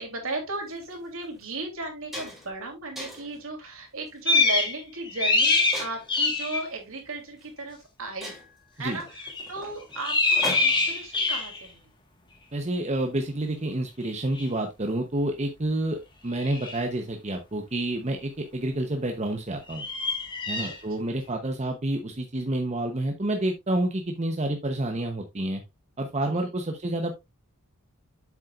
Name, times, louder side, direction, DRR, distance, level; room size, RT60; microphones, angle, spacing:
voice 1, 0.0-8.4 8.7-11.9 20.6-21.1 26.3-26.5, right 2 dB, 65° right, 3 dB, 3.1 m, -36 dB
sound 1, 0.7-0.8 1.4-1.5 1.8-2.6 3.0-3.4 4.1-4.4 5.7-6.3 7.4-7.5 7.8-7.9 8.2-11.0, equal, ahead, 2.8 m, -39 dB
sound 2, 4.3-4.8 5.1-6.6 9.2-9.5 9.9-11.7 14.4-14.5 16.4-16.8 19.7-20.8, left 3 dB, 20° left, 1.6 m, -24 dB
voice 2, 12.5-19.8 20.5-25.6 26.0-27.1, right 1 dB, 30° right, 4 dB, 0.9 m, -29 dB
7.9 x 7.3 x 2.5 m, 0.21 s
head